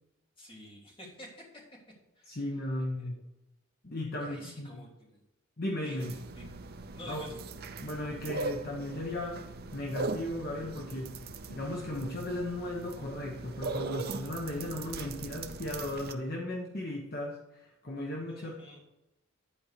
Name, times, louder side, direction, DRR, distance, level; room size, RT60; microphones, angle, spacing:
voice 1, 0.4-1.6 2.1-2.4 2.7-3.1 4.2-5.2 5.8-6.5 6.9-7.4 18.3-18.8, left 1 dB, 25° left, -4 dB, 3.0 m, -49 dB
voice 2, 2.2-3.2 3.8-4.8 5.6-6.1 7.1-7.2 7.8-18.5, left 1 dB, 45° left, -1 dB, 1.1 m, -36 dB
sound 1, 6.0-16.1, right 3 dB, 45° right, 0.6 m, -40 dB
11.0 x 4.6 x 6.7 m, 0.94 s
head